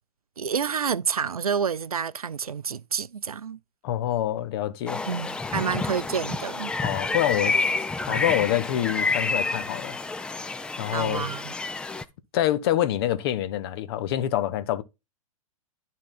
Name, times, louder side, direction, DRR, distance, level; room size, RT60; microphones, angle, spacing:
voice 1, 0.4-3.6 5.1-6.7 10.9-11.5, right 7 dB, 80° right, 0.4 m, -29 dB
voice 2, 3.8-5.0 6.8-7.6 8.1-10.0 10.8-11.3 12.3-14.8, left 12 dB, 45° left, 0.9 m, -26 dB
sound 1, 4.9-12.0, left 3 dB, 5° left, 0.3 m, -29 dB
11.5 x 3.8 x 4.1 m
figure-of-eight pair, 110°, 18 cm